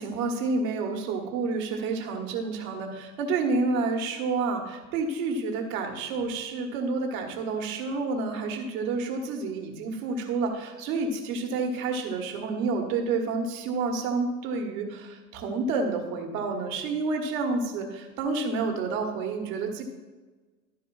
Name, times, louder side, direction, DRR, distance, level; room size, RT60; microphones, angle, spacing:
voice 1, 0.0-19.8, right 3 dB, 55° right, 3 dB, 1.5 m, -29 dB
11.5 x 4.8 x 4.7 m, 1.3 s
figure-of-eight pair, 80°, 47 cm